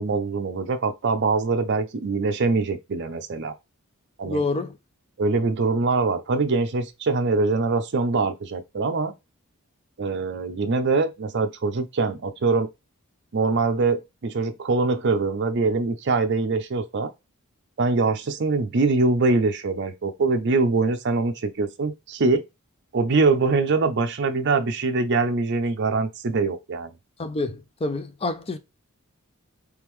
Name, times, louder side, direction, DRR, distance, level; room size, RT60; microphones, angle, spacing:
voice 1, 0.0-3.5 4.2-4.4 5.2-9.1 10.0-12.7 13.3-17.1 17.8-22.4 22.9-26.9, right 3 dB, 55° right, 0.5 m, -23 dB
voice 2, 4.3-4.8 27.2-28.6, left 2 dB, 25° left, 0.5 m, -27 dB
3.6 x 3.4 x 3.1 m
head